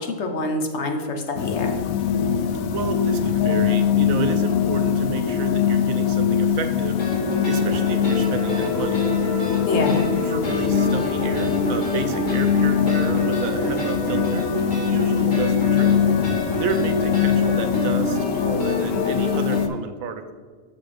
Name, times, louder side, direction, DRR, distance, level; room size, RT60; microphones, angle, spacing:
voice 1, 0.0-1.8 9.6-10.0, left 2 dB, 60° left, 4 dB, 1.0 m, -26 dB
sound 1, 1.4-19.7, left 8 dB, 85° left, 1.0 m, -22 dB
voice 2, 2.7-9.1 9.9-15.9 16.6-20.3, right 5 dB, 85° right, 8 dB, 1.1 m, -31 dB
sound 2, 7.0-19.6, equal, 35° left, 2.2 m, -27 dB
7.0 x 6.9 x 3.4 m, 1.5 s
omnidirectional pair, 1.4 m